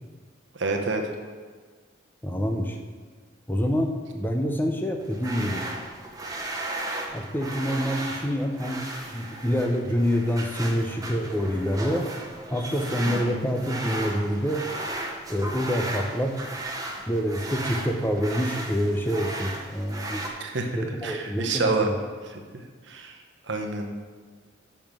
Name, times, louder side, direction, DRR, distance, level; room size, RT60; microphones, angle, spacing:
voice 1, 0.5-1.0 13.1-13.4 20.4-21.9 22.2-22.4 22.9-23.2 23.5-23.9, right 3 dB, 65° right, 3 dB, 1.0 m, -28 dB
voice 2, 2.2-2.8 3.5-5.6 7.1-8.8 9.1-12.1 12.5-14.7 15.3-16.4 17.1-20.2 20.7-22.0, equal, 10° left, 4 dB, 0.6 m, -26 dB
sound 1, 5.0-20.3, right 1 dB, 15° right, 0.9 m, -35 dB
7.0 x 5.5 x 6.1 m, 1.5 s
head